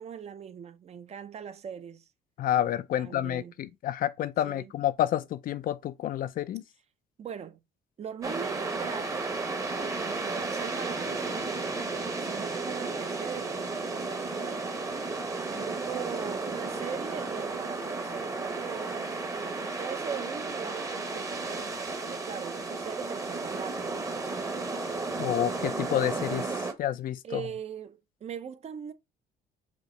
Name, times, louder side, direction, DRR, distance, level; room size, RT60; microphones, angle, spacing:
voice 1, 0.0-2.1 2.9-3.5 4.4-4.7 7.2-7.6 8.0-9.4 9.7-11.9 12.2-14.8 15.4-24.1 27.2-28.9, right 8 dB, 40° right, 0.6 m, -40 dB
voice 2, 2.4-6.6 25.2-26.5 26.8-27.4, left 12 dB, 55° left, 0.5 m, -29 dB
sound 1, 8.2-26.7, right 3 dB, 20° right, 0.9 m, -33 dB
5.1 x 2.8 x 3.2 m
cardioid pair, 110°, 17 cm